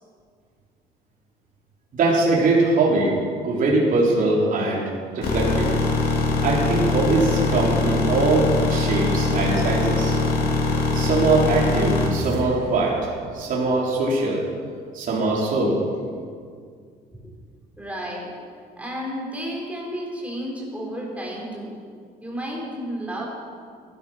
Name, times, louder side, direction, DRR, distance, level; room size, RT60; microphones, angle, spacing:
voice 1, 1.9-3.1 3.4-5.7 6.4-10.2 10.9-13.1 13.3-14.4 14.9-15.9, right 2 dB, 55° right, -4 dB, 3.6 m, -22 dB
sound 1, 5.2-12.1, left 3 dB, 60° left, 3.0 m, -22 dB
sound 2, 12.2-13.7, right 5 dB, 90° right, 1.6 m, -35 dB
voice 2, 17.8-18.3 18.8-21.8 22.2-23.2, equal, 10° right, -3 dB, 5.0 m, -32 dB
15.0 x 12.5 x 6.3 m, 2.1 s
cardioid pair, 110°, 17 cm